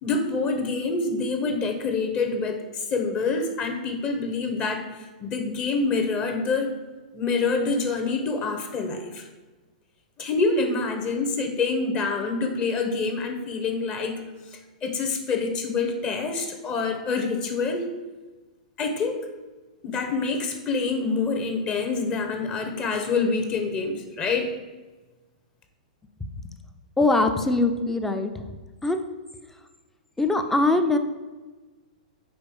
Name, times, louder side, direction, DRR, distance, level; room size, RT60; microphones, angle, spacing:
voice 1, 0.0-4.8 5.2-6.7 7.1-9.3 10.2-14.2 14.8-17.8 18.8-19.3 19.8-24.5, left 4 dB, 30° left, 5 dB, 0.9 m, -26 dB
voice 2, 27.0-28.5 28.8-29.0 30.2-31.0, left 2 dB, 10° left, 7 dB, 0.5 m, -22 dB
5.2 x 4.3 x 5.2 m, 1.2 s
hypercardioid pair, 120°, 4 cm